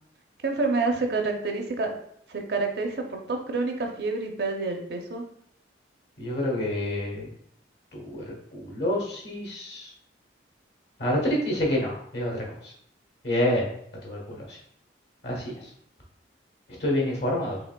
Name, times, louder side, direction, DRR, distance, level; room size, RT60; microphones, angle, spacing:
voice 1, 0.4-1.9 2.3-5.2, right 3 dB, 60° right, 3 dB, 0.6 m, -28 dB
voice 2, 6.2-7.3 7.9-8.2 8.5-9.9 11.0-12.7 13.2-13.7 14.0-14.4 15.2-15.6 16.8-17.6, left 1 dB, 65° left, -1 dB, 1.2 m, -27 dB
4.9 x 3.1 x 2.2 m, 0.69 s
head